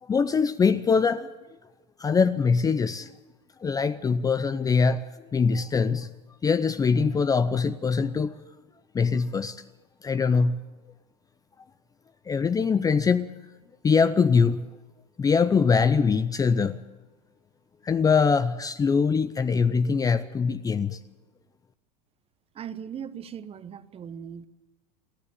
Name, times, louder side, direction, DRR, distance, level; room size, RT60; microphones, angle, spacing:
voice 1, 0.0-1.3 2.0-3.1 3.6-6.1 6.4-8.4 8.9-9.6 10.0-10.6 12.3-13.3 13.8-14.7 15.2-16.8 17.8-21.0, left 5 dB, 15° left, 0.6 m, -23 dB
voice 2, 22.5-24.5, right 8 dB, 30° right, 1.2 m, -38 dB
28.5 x 11.0 x 8.7 m
hypercardioid pair, 110°, 21 cm